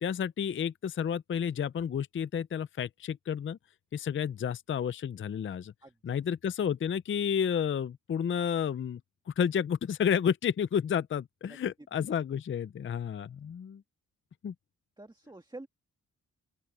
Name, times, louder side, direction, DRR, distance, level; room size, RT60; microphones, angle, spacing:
voice 1, 0.0-3.6 3.9-5.7 6.0-9.0 9.3-13.8 14.4-14.5, left 8 dB, 40° left, 0.5 m, -31 dB
voice 2, 5.8-6.1 11.5-11.6 12.0-12.2 15.0-15.7, right 2 dB, 15° right, 1.8 m, -48 dB
open air
wide cardioid pair, 105°, 33 cm